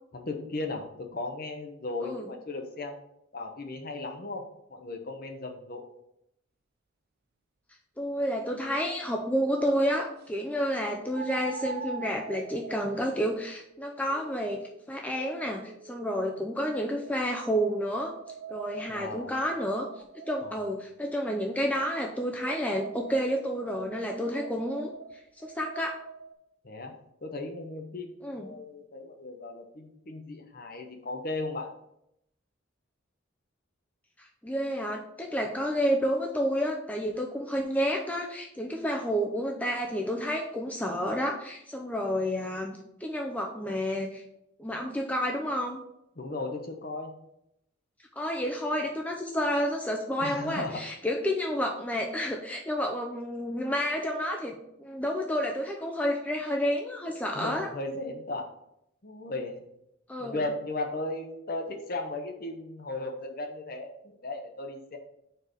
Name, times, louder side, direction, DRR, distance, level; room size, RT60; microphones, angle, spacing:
voice 1, 0.1-3.0 3.3-4.4 4.7-5.9 18.9-19.3 20.4-20.6 26.6-26.9 27.2-31.7 46.2-47.1 50.2-50.8 57.3-58.5 59.0-59.6 60.2-65.0, left 2 dB, 50° left, 3 dB, 0.9 m, -36 dB
voice 2, 8.0-14.6 14.9-18.1 18.5-19.9 20.3-24.9 25.4-25.9 28.2-28.5 34.4-44.2 44.6-45.8 48.2-57.7 60.1-60.4, equal, 10° left, 1 dB, 0.5 m, -30 dB
sound 1, 8.5-8.6 11.1-16.3 17.0-20.7 21.8-26.3, right 6 dB, 50° right, 0.4 m, -44 dB
4.6 x 4.6 x 5.0 m, 0.79 s
head